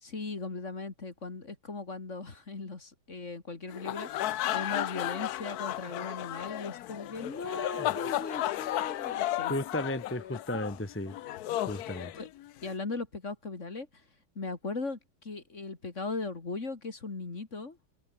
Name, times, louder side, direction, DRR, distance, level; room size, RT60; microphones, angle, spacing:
voice 1, 0.0-9.5 12.0-12.3 12.6-13.9 14.4-17.8, left 3 dB, 35° left, 2.8 m, -38 dB
sound 1, 3.7-12.7, left 13 dB, 70° left, 0.9 m, -34 dB
voice 2, 7.5-7.9 9.5-11.2 11.6-12.1, left 1 dB, 5° left, 1.4 m, -35 dB
omnidirectional pair, 2.3 m